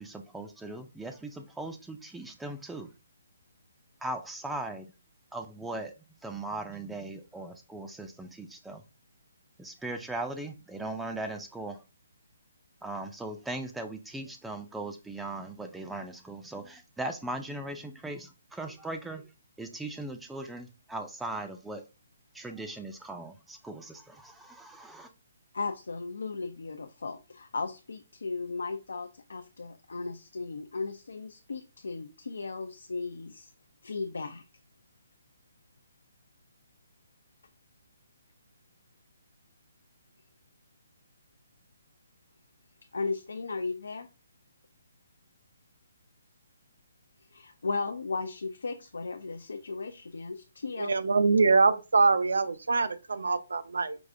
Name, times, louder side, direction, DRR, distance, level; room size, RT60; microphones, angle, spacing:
voice 1, 0.0-2.9 4.0-4.9 5.3-5.9 6.2-8.8 9.6-11.8 12.8-19.3 19.6-21.8 22.3-25.1, right 2 dB, 5° right, 0.3 m, -39 dB
voice 2, 25.5-33.5 33.8-34.4 42.9-44.1 47.3-50.9, left 4 dB, 85° left, 0.4 m, -36 dB
voice 3, 50.8-54.0, right 4 dB, 90° right, 0.4 m, -24 dB
4.7 x 2.4 x 2.5 m
hypercardioid pair, 165°, 0 cm